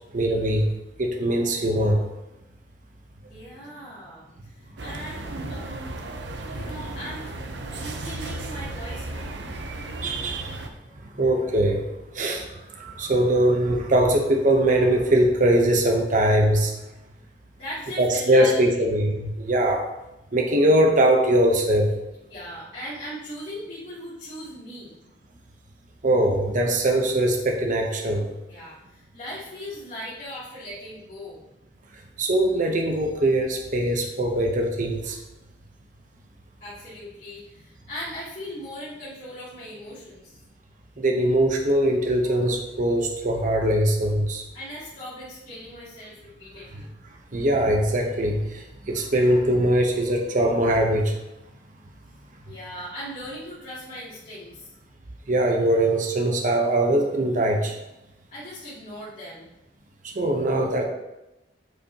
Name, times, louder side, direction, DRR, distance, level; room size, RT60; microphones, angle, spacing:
voice 1, 0.1-0.7 1.0-2.0 10.0-10.6 11.1-11.8 12.1-16.7 18.0-19.9 20.3-21.9 26.0-28.3 32.2-35.2 41.0-44.4 47.3-51.2 55.3-57.8 60.0-60.8, right 1 dB, 45° right, 2 dB, 0.9 m, -21 dB
voice 2, 3.2-4.3 4.6-5.9 6.5-7.3 7.7-9.4 17.6-18.8 22.3-24.9 28.5-31.4 36.6-40.4 44.5-46.9 52.4-54.7 58.3-59.5, equal, 40° left, -13 dB, 2.8 m, -39 dB
sound 1, 4.8-10.7, right 2 dB, 75° right, 0.8 m, -35 dB
8.3 x 6.9 x 2.9 m, 0.93 s
head